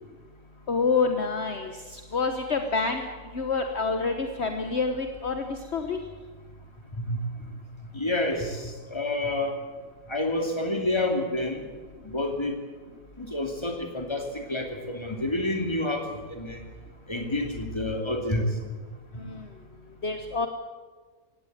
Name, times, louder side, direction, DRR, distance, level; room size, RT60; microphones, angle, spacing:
voice 1, 0.7-3.0 3.3-6.0 19.2-19.4 20.0-20.5, left 4 dB, 50° left, 6 dB, 1.6 m, -27 dB
voice 2, 6.9-7.5 7.9-9.5 10.1-11.7 12.0-12.6 13.2-16.6 17.1-18.6 19.1-19.2, left 1 dB, 20° left, 4 dB, 2.9 m, -29 dB
18.5 x 16.0 x 9.4 m, 1.4 s
omnidirectional pair, 1.4 m